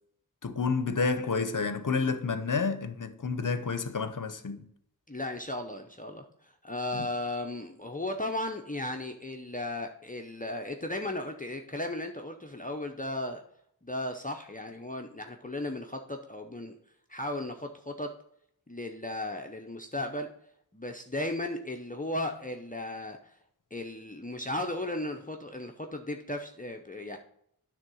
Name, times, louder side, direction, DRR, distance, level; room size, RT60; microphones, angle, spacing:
voice 1, 0.4-4.6 6.9-7.1, left 4 dB, 55° left, 0.7 m, -30 dB
voice 2, 5.1-13.4 13.8-16.7 17.1-18.2 18.7-20.3 20.7-23.4 23.7-27.2, left 1 dB, 20° left, 0.7 m, -36 dB
9.5 x 3.7 x 6.3 m
wide cardioid pair, 45°, 37 cm